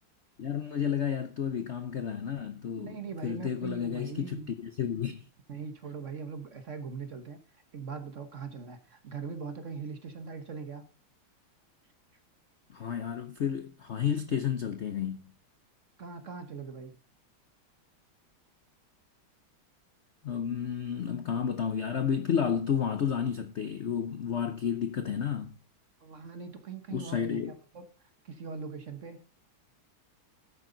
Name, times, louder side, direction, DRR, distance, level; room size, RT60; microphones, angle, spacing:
voice 1, 0.4-5.2 12.7-15.2 20.2-25.5 26.9-27.5, left 8 dB, 85° left, 0.6 m, -31 dB
voice 2, 2.8-4.6 5.5-7.4 7.7-10.8 16.0-16.9 26.0-27.4 27.7-27.9 28.2-29.2, right 5 dB, 45° right, 1.1 m, -41 dB
12.0 x 9.0 x 3.9 m
omnidirectional pair, 2.3 m